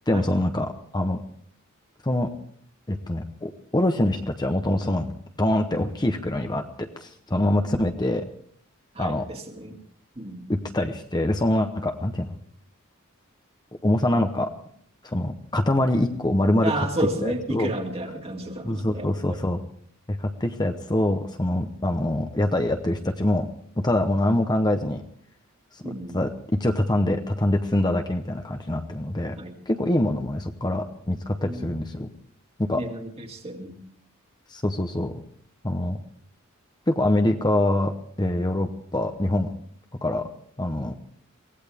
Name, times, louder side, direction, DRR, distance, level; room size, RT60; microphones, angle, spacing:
voice 1, 0.1-1.2 2.0-2.3 2.9-5.1 5.4-8.3 9.0-9.3 10.5-12.3 13.8-14.5 15.0-16.9 17.2-17.7 18.6-19.6 20.1-23.5 23.8-25.0 25.7-29.4 29.7-32.1 32.6-32.8 34.5-35.1 35.6-36.0 36.9-37.9 38.2-39.5 40.0-40.3 40.6-40.9, left 1 dB, 20° left, 5 dB, 0.8 m, -24 dB
voice 2, 8.9-9.8 10.2-10.5 16.6-19.4 25.8-26.2 29.4-29.5 31.4-31.8 32.8-33.8, right 1 dB, 30° right, 3 dB, 2.1 m, -32 dB
24.0 x 17.0 x 3.5 m, 0.62 s
head